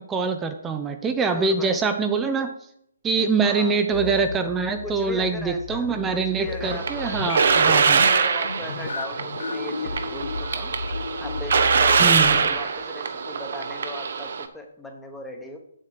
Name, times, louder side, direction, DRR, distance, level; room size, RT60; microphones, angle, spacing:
voice 1, 0.0-2.5 3.0-8.0 12.0-12.4, right 4 dB, 10° right, 6 dB, 0.7 m, -24 dB
voice 2, 1.1-1.8 3.4-3.8 4.8-7.3 7.8-10.7 11.2-15.6, left 1 dB, 5° left, 2 dB, 1.3 m, -38 dB
sound 1, 3.9-12.4, left 3 dB, 60° left, 0.9 m, -33 dB
sound 2, 6.6-14.5, right 5 dB, 55° right, 1.0 m, -23 dB
8.1 x 7.7 x 4.9 m, 0.72 s
figure-of-eight pair, 140°, 0 cm